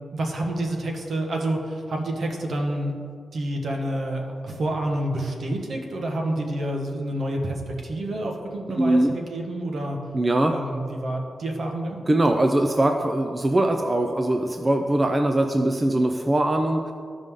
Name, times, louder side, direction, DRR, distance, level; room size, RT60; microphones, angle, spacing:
voice 1, 0.1-2.9 3.3-10.0 10.5-12.0, right 1 dB, 70° right, 1 dB, 1.4 m, -28 dB
voice 2, 8.8-9.1 10.1-10.5 12.1-16.9, right 1 dB, 25° right, 5 dB, 0.5 m, -21 dB
14.5 x 5.2 x 3.7 m, 2.2 s
cardioid pair, 90°, 0 cm